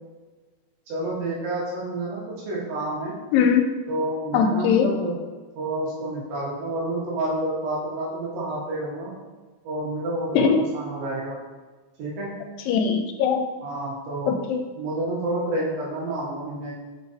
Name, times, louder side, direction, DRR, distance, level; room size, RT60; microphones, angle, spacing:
voice 1, 0.9-3.1 3.9-5.1 5.6-9.1 9.6-11.4 12.0-12.3 13.6-14.3 14.8-16.8, right 1 dB, 85° right, -5 dB, 3.2 m, -29 dB
voice 2, 3.3-3.7 4.3-4.9 10.3-10.6 12.7-13.5 14.3-14.7, left 6 dB, 85° left, 5 dB, 2.3 m, -20 dB
6.1 x 3.9 x 4.0 m, 1.3 s
omnidirectional pair, 4.0 m